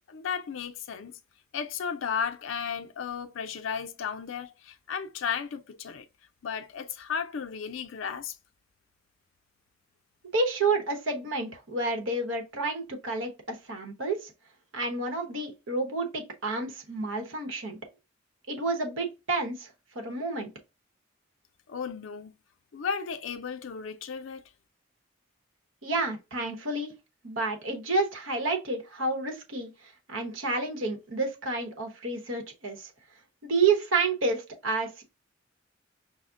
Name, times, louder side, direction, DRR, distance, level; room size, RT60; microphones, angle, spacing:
voice 1, 0.1-1.2 1.5-6.1 6.4-8.4 21.7-22.3 22.7-24.4, left 6 dB, 80° left, 0.5 m, -34 dB
voice 2, 10.3-14.3 14.7-17.8 18.5-19.7 19.9-20.5 25.8-26.9 27.2-29.7 30.1-32.9 33.4-35.0, right 3 dB, 90° right, 1.0 m, -29 dB
5.6 x 2.1 x 2.5 m
head